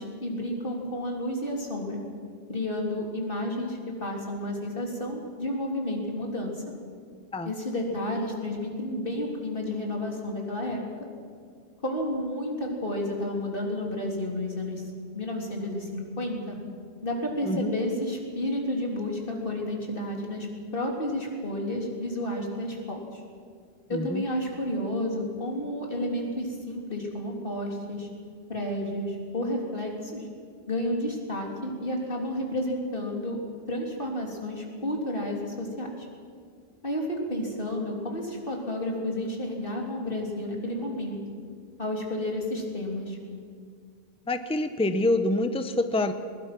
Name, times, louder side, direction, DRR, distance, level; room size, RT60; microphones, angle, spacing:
voice 1, 0.0-2.0 2.5-6.6 7.5-10.8 11.8-16.6 17.0-20.5 20.7-23.2 23.9-28.1 28.5-30.2 30.7-33.4 33.7-36.1 36.8-41.2 41.8-43.2, left 1 dB, 60° left, 0 dB, 3.6 m, -31 dB
voice 2, 17.4-17.7 23.9-24.2 44.3-46.1, left 2 dB, 5° left, 9 dB, 0.8 m, -26 dB
21.5 x 21.0 x 6.1 m, 2.1 s
omnidirectional pair, 1.0 m